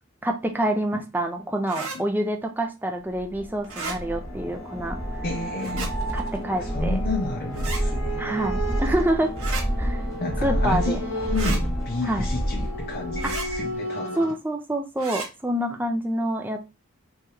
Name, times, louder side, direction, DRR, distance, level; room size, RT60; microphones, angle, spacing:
voice 1, 0.2-5.0 6.1-7.0 8.2-9.3 9.8-10.0 10.4-11.0 12.0-12.3 13.2-13.6 14.2-16.7, right 1 dB, 10° right, 0.5 m, -27 dB
sound 1, 1.7-2.0 3.6-4.0 5.6-5.9 7.5-7.8 9.4-9.6 11.3-11.6 13.2-13.5 15.0-15.3, right 3 dB, 75° right, 1.0 m, -33 dB
sound 2, 3.1-13.7, equal, 15° left, 1.0 m, -29 dB
sound 3, 3.7-14.3, right 2 dB, 70° left, 0.9 m, -36 dB
voice 2, 5.2-5.9 6.6-8.4 10.2-14.3, left 3 dB, 40° left, 0.5 m, -31 dB
3.5 x 3.1 x 2.9 m
head